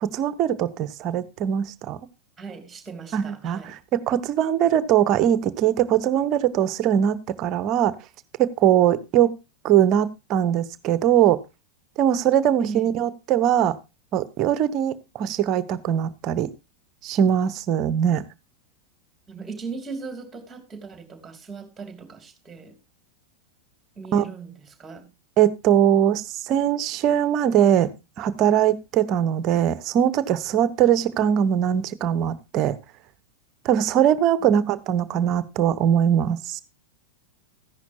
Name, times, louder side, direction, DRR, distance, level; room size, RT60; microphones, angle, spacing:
voice 1, 0.0-2.0 3.1-7.9 8.4-9.3 9.6-11.4 12.0-13.8 14.1-16.5 17.0-18.2 24.1-24.2 25.4-27.9 28.2-32.8 33.6-36.6, right 10 dB, 35° right, 0.9 m, -21 dB
voice 2, 2.4-3.8 12.6-13.0 19.3-22.7 24.0-25.1 34.4-34.7, right 4 dB, 15° right, 2.9 m, -38 dB
14.5 x 10.5 x 2.7 m
figure-of-eight pair, 90°, 0 cm